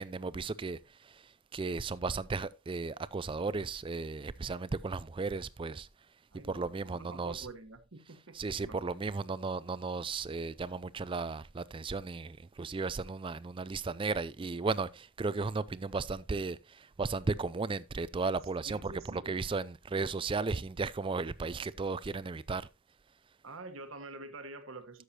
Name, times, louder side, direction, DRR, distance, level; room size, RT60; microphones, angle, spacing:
voice 1, 0.0-5.9 6.5-7.5 8.3-22.7, right 4 dB, 25° right, 0.3 m, -35 dB
voice 2, 6.3-8.8 18.6-19.3 23.4-25.0, right 3 dB, 65° right, 1.2 m, -47 dB
13.0 x 6.5 x 2.8 m
head